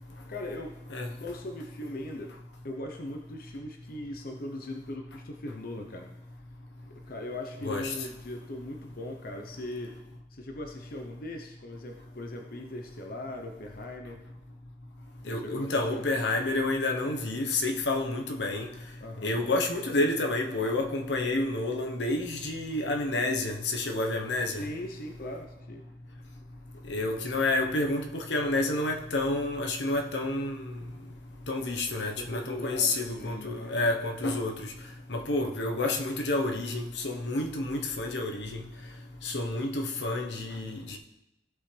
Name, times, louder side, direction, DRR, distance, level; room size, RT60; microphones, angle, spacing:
voice 1, 0.3-0.8 1.2-2.4 2.6-6.1 7.1-10.0 10.3-14.2 15.2-16.0 19.0-19.4 24.6-25.8 27.2-27.3 32.2-33.8, left 1 dB, 55° left, 3 dB, 0.9 m, -39 dB
voice 2, 7.6-7.9 15.3-18.7 19.2-24.6 26.9-30.7 31.5-34.7 35.1-38.6 39.2-41.0, left 2 dB, 80° left, 2 dB, 1.1 m, -29 dB
16.0 x 5.6 x 3.4 m, 0.91 s
head